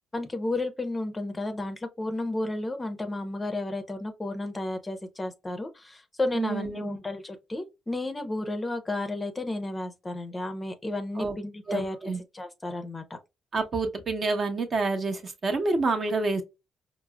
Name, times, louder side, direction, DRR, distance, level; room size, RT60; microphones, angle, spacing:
voice 1, 0.1-12.0 12.3-13.2, left 2 dB, 20° left, 0.6 m, -32 dB
voice 2, 6.3-7.0 11.2-11.4 11.7-12.2 13.5-16.4, right 3 dB, 45° right, 0.8 m, -28 dB
4.6 x 2.0 x 2.2 m
cardioid pair, 90°, 0 cm